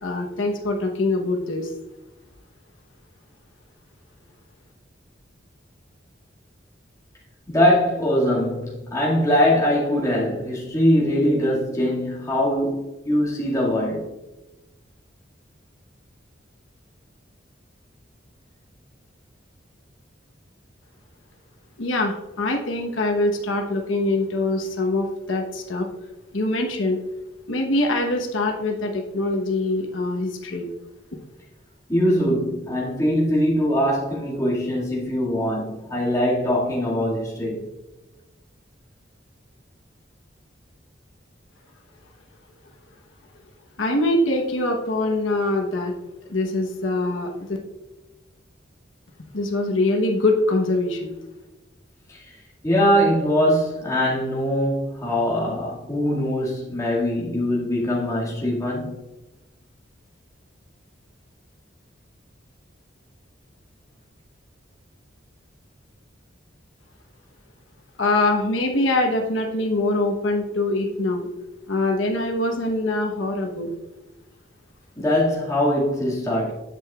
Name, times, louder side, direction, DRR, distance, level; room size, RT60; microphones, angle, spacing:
voice 1, 0.0-1.7 21.8-25.9 26.3-27.0 27.5-30.7 43.8-45.9 46.3-47.6 49.3-51.1 68.0-71.3 71.7-73.7, left 2 dB, 85° left, 1.1 m, -23 dB
voice 2, 7.5-14.0 31.9-37.7 52.1-52.3 52.6-59.0 75.0-76.5, equal, 15° left, 2.1 m, -22 dB
9.7 x 7.8 x 2.4 m
head